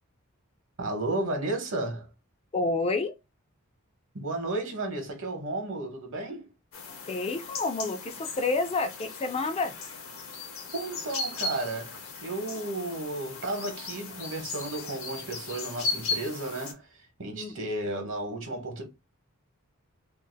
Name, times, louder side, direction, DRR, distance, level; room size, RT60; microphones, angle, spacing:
voice 1, 0.8-2.1 4.1-6.5 10.7-18.8, right 2 dB, 60° right, 0.9 m, -33 dB
voice 2, 2.5-3.1 7.1-9.7 17.4-17.5, left 3 dB, 25° left, 0.3 m, -29 dB
sound 1, 6.7-16.7, left 4 dB, 65° left, 0.8 m, -37 dB
2.6 x 2.4 x 3.7 m
head